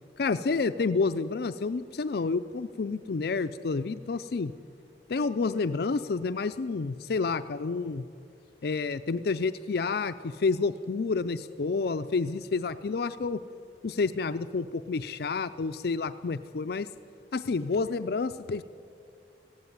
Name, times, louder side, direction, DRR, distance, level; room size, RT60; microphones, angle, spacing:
voice 1, 0.2-4.5 5.1-8.1 8.6-13.4 13.8-16.9 17.3-18.6, left 4 dB, 60° left, 10 dB, 0.5 m, -29 dB
17.5 x 15.5 x 9.8 m, 2.6 s
head